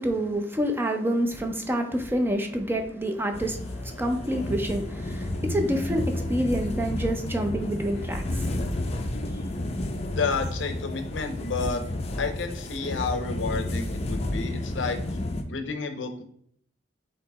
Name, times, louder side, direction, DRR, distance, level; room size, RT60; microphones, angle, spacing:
voice 1, 0.0-8.7, right 1 dB, 10° right, 0.5 m, -28 dB
sound 1, 3.3-15.4, left 1 dB, 35° left, 0.5 m, -31 dB
voice 2, 10.2-11.8 12.2-15.0 15.5-16.2, left 4 dB, 85° left, 0.6 m, -30 dB
4.9 x 2.9 x 3.5 m
head